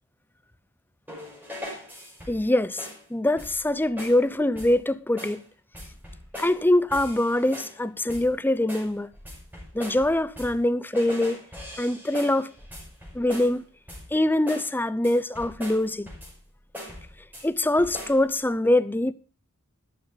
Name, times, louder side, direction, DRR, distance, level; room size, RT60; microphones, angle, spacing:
sound 1, 1.1-2.5 2.8-3.1 3.4-3.7 4.0-4.2 4.6-4.8 5.2-5.4 5.7-6.6 6.9-7.8 8.1-8.4 8.7-10.7 10.9-13.6 13.9-14.2 14.5-14.7 15.0-16.4 16.7-17.5 17.8-18.2, left 1 dB, 10° right, 5.7 m, -41 dB
voice 1, 2.3-5.4 6.4-9.1 9.7-11.4 11.8-12.5 13.1-13.6 14.1-16.1 17.4-19.1, left 1 dB, 10° left, 0.6 m, -23 dB
13.5 x 12.5 x 4.1 m
head